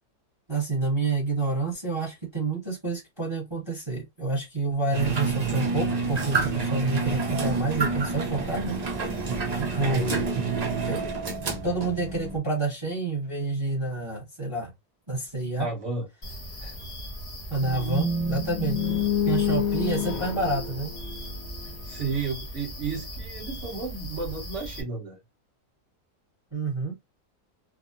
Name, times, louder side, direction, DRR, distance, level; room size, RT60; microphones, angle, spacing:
voice 1, 0.5-8.8 9.5-10.2 10.9-11.0 11.6-14.7 15.1-15.7 17.5-18.8 19.2-20.9 26.5-27.0, right 3 dB, 20° right, 0.9 m, -28 dB
sound 1, 4.9-12.4, right 4 dB, 80° right, 0.3 m, -28 dB
voice 2, 9.9-10.3 15.5-16.1 16.6-16.8 21.6-25.2, right 4 dB, 55° right, 1.2 m, -33 dB
sound 2, 16.2-24.8, equal, 30° left, 0.8 m, -38 dB
sound 3, 17.6-21.7, left 5 dB, 70° left, 1.0 m, -28 dB
3.5 x 2.0 x 2.4 m
omnidirectional pair, 1.6 m